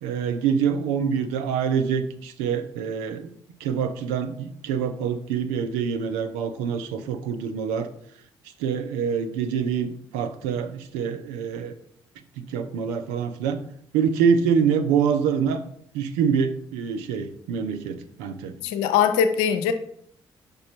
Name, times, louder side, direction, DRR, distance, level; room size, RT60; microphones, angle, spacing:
voice 1, 0.0-3.3 3.6-7.9 8.6-11.7 12.4-13.6 13.9-15.6 15.9-18.5, right 7 dB, 70° right, 9 dB, 0.6 m, -25 dB
voice 2, 18.6-19.7, left 8 dB, 70° left, 9 dB, 0.6 m, -21 dB
5.4 x 5.2 x 4.4 m, 0.68 s
figure-of-eight pair, 40°, 13 cm